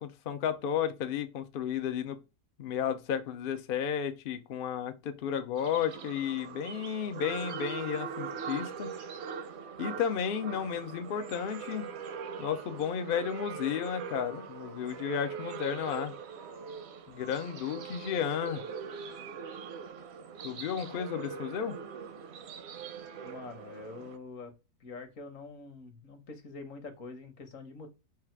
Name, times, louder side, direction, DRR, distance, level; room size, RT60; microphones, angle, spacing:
voice 1, 0.0-2.2 2.6-8.9 9.8-11.9 12.4-16.1 17.1-18.6 20.4-21.8, left 8 dB, 85° left, 0.4 m, -33 dB
sound 1, 5.6-24.2, right 6 dB, 60° right, 0.7 m, -42 dB
voice 2, 23.2-24.5 24.8-27.9, left 3 dB, 60° left, 1.3 m, -45 dB
4.7 x 2.4 x 4.4 m
omnidirectional pair, 1.7 m